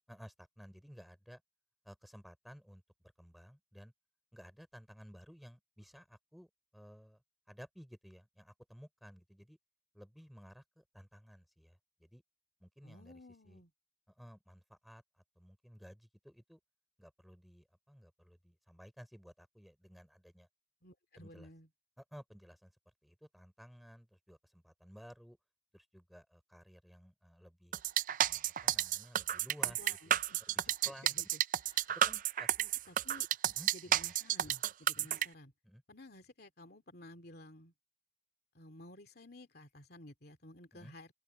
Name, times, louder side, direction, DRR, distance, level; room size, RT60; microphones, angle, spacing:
voice 1, 0.1-1.4 1.9-2.8 3.2-3.9 4.3-7.2 7.5-9.6 9.9-12.2 12.6-13.2 13.5-13.6 14.2-15.0 15.4-16.6 17.0-20.5 21.2-21.5 22.1-22.7 23.0-25.4 25.7-27.7 28.3-29.8 30.1-30.2 30.7-31.2 31.9-32.7 33.5-34.1 34.9-35.1 35.6-35.8 40.7-40.9, equal, ahead, 5.2 m, -55 dB
voice 2, 12.8-13.7 20.8-21.7 29.6-32.0 32.7-33.3 33.7-35.5 35.9-37.7 38.5-41.1, left 1 dB, 55° left, 2.7 m, -55 dB
sound 1, 27.7-35.3, right 11 dB, 45° right, 0.4 m, -31 dB
open air
head